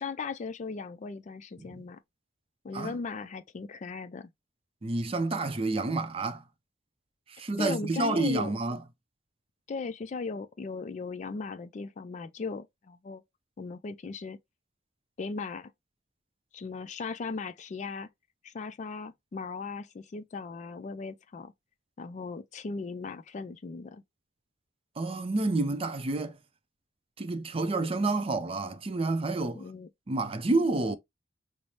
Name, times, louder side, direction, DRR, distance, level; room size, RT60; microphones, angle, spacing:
voice 1, 0.0-2.0 2.6-4.3 7.6-8.5 9.7-13.2 13.6-14.4 15.2-15.7 16.5-18.1 18.4-21.5 22.0-24.0 29.5-29.9, left 4 dB, 40° left, 0.3 m, -37 dB
voice 2, 4.8-6.4 7.3-8.8 25.0-26.4 27.2-29.6 30.1-31.0, right 2 dB, 30° right, 0.5 m, -29 dB
5.4 x 2.0 x 3.1 m
head